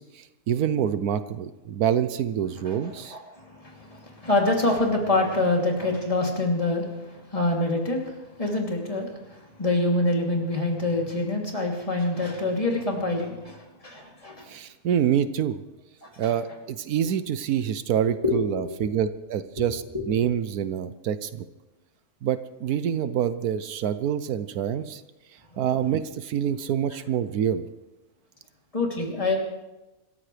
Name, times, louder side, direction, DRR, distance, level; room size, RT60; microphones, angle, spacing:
voice 1, 0.0-3.2 14.5-15.6 16.2-21.4 22.2-25.0 25.6-27.7, right 9 dB, 80° right, 12 dB, 1.2 m, -26 dB
voice 2, 3.1-14.5 16.0-16.3 18.2-18.9 19.9-20.0 28.7-29.4, left 2 dB, 20° left, -1 dB, 3.1 m, -26 dB
26.0 x 14.0 x 3.3 m, 1.1 s
omnidirectional pair, 1.6 m